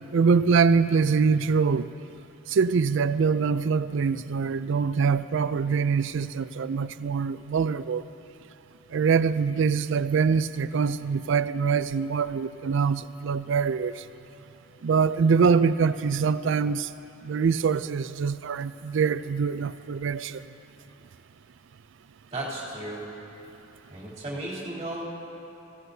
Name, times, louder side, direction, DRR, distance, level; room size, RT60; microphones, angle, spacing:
voice 1, 0.1-1.9 2.5-8.0 8.9-14.0 14.8-16.9 17.2-20.4, right 5 dB, 65° right, 14 dB, 0.4 m, -24 dB
voice 2, 22.3-23.0 23.9-25.0, right 1 dB, 25° right, -8 dB, 2.9 m, -34 dB
25.5 x 16.0 x 2.7 m, 2.9 s
head